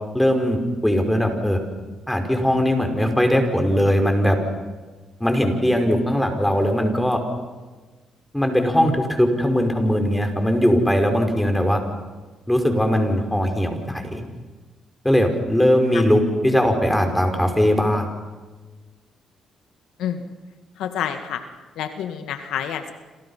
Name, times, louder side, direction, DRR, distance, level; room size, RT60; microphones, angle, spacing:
voice 1, 0.1-1.6 2.1-4.4 5.2-7.2 8.3-11.8 12.5-14.2 15.0-18.1, equal, 5° left, 5 dB, 5.2 m, -20 dB
voice 2, 20.8-21.4 21.8-22.9, left 9 dB, 85° left, 7 dB, 2.0 m, -28 dB
29.0 x 27.0 x 5.7 m, 1.3 s
cardioid pair, 90°, 0 cm